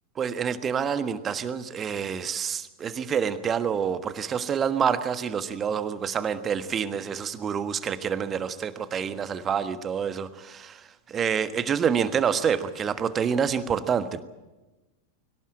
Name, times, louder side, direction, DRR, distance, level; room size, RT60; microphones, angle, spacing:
voice 1, 0.2-14.2, right 7 dB, 25° right, 12 dB, 1.4 m, -27 dB
23.0 x 18.0 x 8.8 m, 1.1 s
figure-of-eight pair, 90°, 0 cm